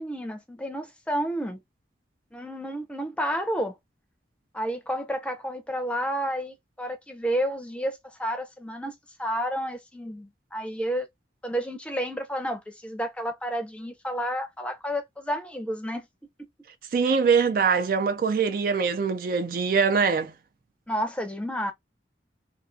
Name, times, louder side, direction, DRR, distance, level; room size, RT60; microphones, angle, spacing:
voice 1, 0.0-1.6 2.3-3.7 4.5-8.9 9.2-11.1 11.4-16.1 20.9-21.7, equal, 5° left, 0.5 m, -30 dB
voice 2, 16.9-20.3, right 5 dB, 50° right, 0.3 m, -23 dB
2.5 x 2.4 x 2.3 m
head